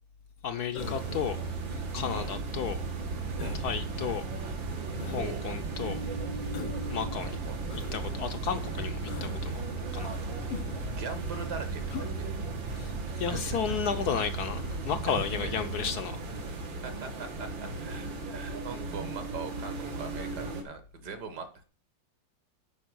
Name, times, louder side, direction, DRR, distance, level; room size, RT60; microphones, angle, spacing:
voice 1, 0.4-1.4 1.7-2.8 3.6-4.2 5.0-6.0 6.9-7.4 7.9-9.6 9.9-10.2 12.7-16.2, left 7 dB, 65° left, 1.1 m, -33 dB
Human voice, 0.7-1.2 2.0-2.5 3.4-3.7 4.9-5.3 6.5-6.9 7.7-8.0 9.1-9.4 10.5-10.9 11.9-12.1 13.2-13.5 14.5-14.8, left 9 dB, 85° left, 1.6 m, -41 dB
sound 1, 0.8-20.6, right 3 dB, 75° right, 2.3 m, -35 dB
voice 2, 7.2-7.5 10.9-12.3 13.1-13.6 15.4-15.5 16.8-21.6, right 5 dB, 60° right, 1.8 m, -41 dB
10.0 x 4.7 x 6.2 m
omnidirectional pair, 2.1 m